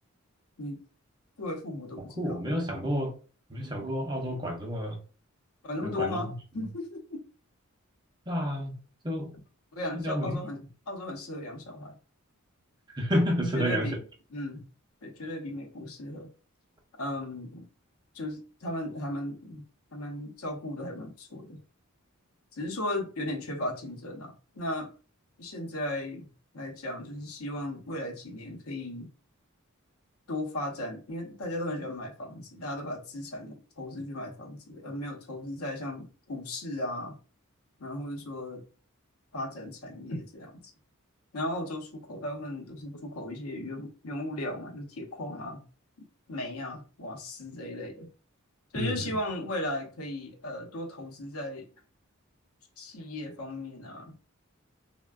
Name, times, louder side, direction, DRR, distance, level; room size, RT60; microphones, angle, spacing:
voice 1, 1.4-2.9 5.6-7.2 9.7-12.0 13.4-14.0 14.3-14.6 15.0-16.3 17.0-17.7 18.1-19.6 19.9-21.6 22.5-24.9 25.4-26.3 26.5-29.1 30.3-37.2 37.8-38.6 39.3-40.6 41.3-45.7 46.3-48.1 48.7-51.7 52.8-54.3, left 1 dB, 85° left, 0.7 m, -36 dB
voice 2, 2.2-3.1 3.5-5.0 5.8-6.3 8.3-8.8 9.0-9.3 9.9-10.4 12.9-13.9 48.8-49.1, equal, 20° right, 0.6 m, -30 dB
3.3 x 2.1 x 2.2 m
head